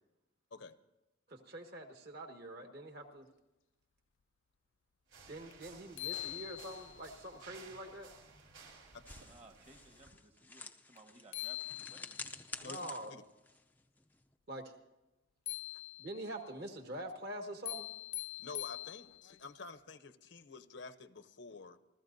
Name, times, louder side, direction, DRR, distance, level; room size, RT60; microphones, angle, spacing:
voice 1, 1.3-3.3 5.3-8.1 12.6-13.1 14.5-14.6 16.0-17.9, right 1 dB, 55° right, 4 dB, 1.7 m, -45 dB
sound 1, 5.1-10.1, right 4 dB, 80° right, 3.4 m, -56 dB
sound 2, 5.5-5.6 6.0-7.1 11.0-11.1 11.3-12.4 15.5-16.4 17.6-19.4, left 16 dB, 85° left, 0.5 m, -43 dB
sound 3, 9.1-14.3, left 3 dB, 10° left, 0.5 m, -50 dB
voice 2, 9.3-12.2, right 2 dB, 30° right, 5 dB, 1.3 m, -60 dB
voice 3, 12.6-13.2 18.4-21.8, left 4 dB, 65° left, 11 dB, 0.8 m, -49 dB
29.0 x 14.0 x 2.7 m, 0.99 s
head